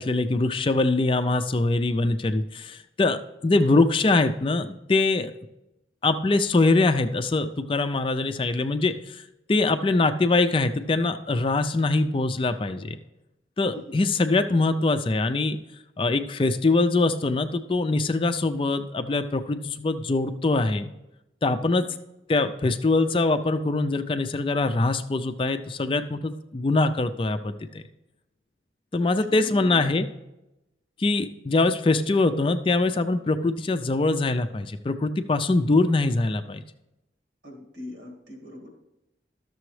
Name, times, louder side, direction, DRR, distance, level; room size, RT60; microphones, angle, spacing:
voice 1, 0.0-5.3 6.0-9.2 9.5-13.0 13.6-15.6 16.0-20.9 21.4-21.9 22.3-27.8 28.9-30.0 31.0-36.6, left 3 dB, 30° left, 9 dB, 0.4 m, -23 dB
voice 2, 13.7-14.0 21.6-21.9 29.3-29.9 37.4-38.7, left 1 dB, 80° right, 1 dB, 2.1 m, -41 dB
12.5 x 6.9 x 3.2 m, 0.93 s
head